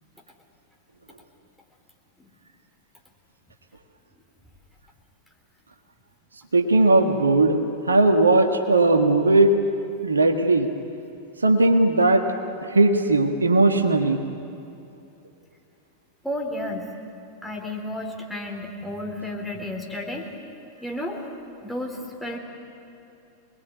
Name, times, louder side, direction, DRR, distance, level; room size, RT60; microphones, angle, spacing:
voice 1, 6.5-7.6 7.9-9.5 10.0-10.7 11.4-12.3 12.6-14.2, right 2 dB, 75° right, 5 dB, 1.6 m, -18 dB
voice 2, 16.2-16.9 17.4-20.3 20.8-21.2 21.6-22.4, left 1 dB, ahead, -1 dB, 3.9 m, -32 dB
26.5 x 20.5 x 9.5 m, 2.7 s
figure-of-eight pair, 90°, 0 cm